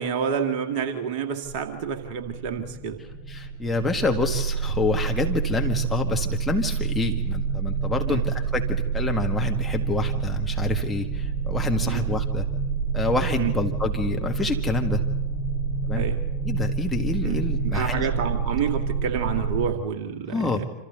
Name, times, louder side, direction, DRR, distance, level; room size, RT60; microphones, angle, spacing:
voice 1, 0.0-3.0 8.1-8.2 11.8-12.0 13.4-13.5 15.9-16.2 17.2-20.7, right 6 dB, 45° right, 7 dB, 1.9 m, -29 dB
sound 1, 1.5-19.7, right 6 dB, 10° right, 6.4 m, -28 dB
voice 2, 3.3-12.5 12.9-15.0 15.9-16.1 16.4-18.1 20.3-20.6, left 3 dB, 10° left, 2 dB, 2.0 m, -27 dB
27.0 x 26.5 x 4.0 m, 0.99 s
figure-of-eight pair, 90°, 0 cm